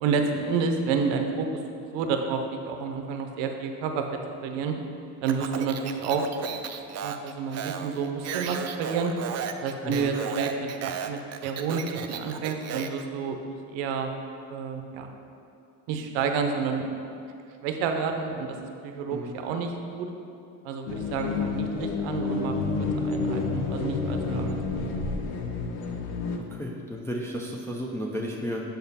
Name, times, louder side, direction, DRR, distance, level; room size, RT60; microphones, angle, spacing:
voice 1, 0.0-1.5 1.8-4.8 5.2-6.6 7.0-9.1 9.6-14.1 14.5-15.1 15.9-16.9 17.6-18.6 18.8-20.1 20.6-22.6 22.9-25.2, right 5 dB, 70° right, 5 dB, 0.7 m, -30 dB
Speech, 5.2-13.0, right 8 dB, 35° right, 0.4 m, -35 dB
sound 1, 20.9-26.4, left 4 dB, 75° left, 0.8 m, -29 dB
voice 2, 26.5-28.6, equal, 5° left, -2 dB, 0.6 m, -33 dB
6.8 x 4.0 x 4.1 m, 2.5 s
hypercardioid pair, 55°, 47 cm